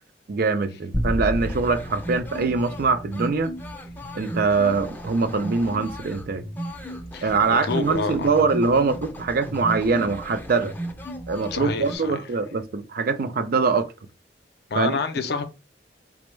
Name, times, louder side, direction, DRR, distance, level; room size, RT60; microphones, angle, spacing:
voice 1, 0.3-3.5 4.1-6.4 7.2-10.7 11.3-13.9 14.7-15.0, right 4 dB, 55° right, 0.4 m, -23 dB
sound 1, 0.9-3.4, equal, 25° right, 0.7 m, -30 dB
sound 2, 1.4-12.0, right 1 dB, 10° left, 0.5 m, -35 dB
voice 2, 7.1-8.3 11.5-12.2 14.7-15.5, left 4 dB, 65° left, 0.5 m, -28 dB
4.3 x 2.0 x 3.1 m
head